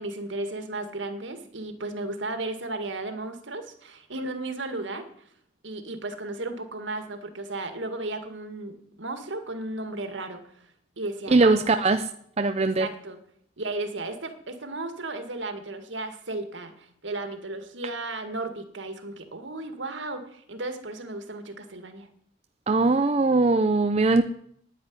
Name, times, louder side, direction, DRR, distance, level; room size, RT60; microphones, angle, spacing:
voice 1, 0.0-5.1 5.6-10.4 11.0-11.8 12.6-13.2 13.6-22.1, right 2 dB, 75° right, 8 dB, 2.0 m, -34 dB
voice 2, 11.3-12.1 12.4-12.9 22.7-24.2, right 3 dB, 35° right, 8 dB, 0.6 m, -20 dB
10.0 x 9.9 x 9.5 m, 0.67 s
head